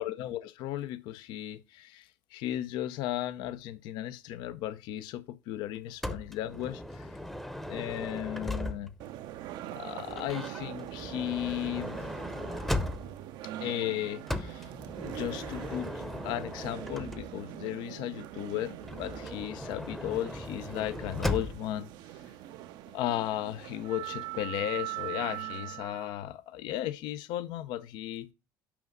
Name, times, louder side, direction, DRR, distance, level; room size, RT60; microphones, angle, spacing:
voice 1, 0.0-7.1 7.7-8.9 9.7-12.0 13.6-14.7 15.0-22.2 22.9-28.3, left 13 dB, 70° left, 0.6 m, -35 dB
Motor vehicle (road) / Sliding door, 6.0-9.1 10.1-13.3 14.3-17.6 18.8-21.8, left 1 dB, 5° left, 0.7 m, -37 dB
sound 1, 9.0-26.1, right 14 dB, 70° right, 0.5 m, -42 dB
6.0 x 4.8 x 5.2 m
supercardioid pair, 85°, 8 cm